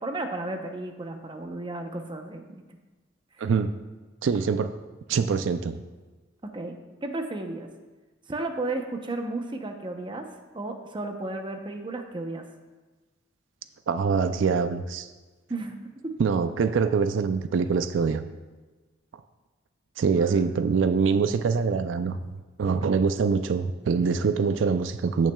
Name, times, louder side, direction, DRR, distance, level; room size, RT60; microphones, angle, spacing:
voice 1, 0.0-2.6 3.4-3.5 6.5-7.7 8.3-10.3 10.5-12.4 15.5-15.7 16.0-16.2 20.1-20.4 22.8-22.9, right 2 dB, 25° right, 5 dB, 0.7 m, -33 dB
voice 2, 3.4-3.8 4.2-4.7 5.1-5.8 13.9-15.1 16.2-18.2 20.0-22.2 22.6-25.3, right 5 dB, 85° right, 10 dB, 0.4 m, -24 dB
15.0 x 6.1 x 2.3 m, 1.3 s
head